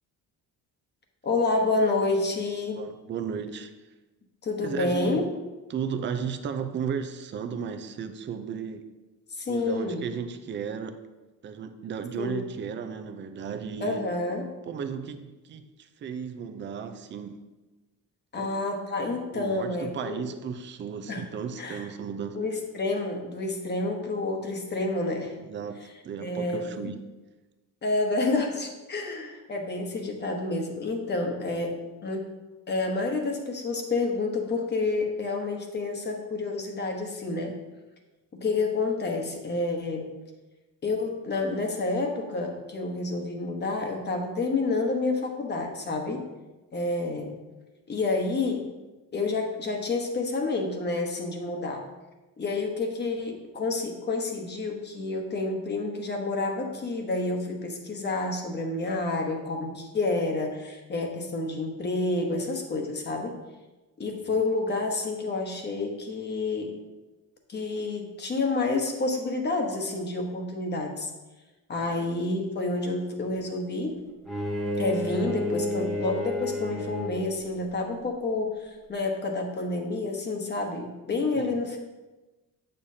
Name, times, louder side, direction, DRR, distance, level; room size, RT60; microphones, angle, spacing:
voice 1, 1.2-2.8 4.4-5.3 9.4-10.0 12.2-12.4 13.8-14.5 18.3-20.2 21.1-21.2 21.6-21.9 22.3-25.3 26.2-26.9 27.8-32.3 32.7-37.5 38.4-40.1 40.8-46.2 46.7-47.4 47.9-48.7 49.1-51.8 52.4-63.3 64.0-66.7 67.5-71.1 71.7-74.0 74.8-81.8, left 3 dB, 30° left, 2 dB, 1.1 m, -29 dB
voice 2, 2.8-3.7 4.6-5.2 5.7-8.9 9.5-11.0 11.4-14.1 14.7-17.4 18.3-18.6 19.3-22.4 25.4-27.0 64.3-64.4 71.8-72.1 81.3-81.7, right 6 dB, 35° right, 8 dB, 0.5 m, -35 dB
Bowed string instrument, 74.2-77.5, left 1 dB, ahead, 0.9 m, -31 dB
8.6 x 6.6 x 2.8 m, 1.1 s
cardioid pair, 150°, 35 cm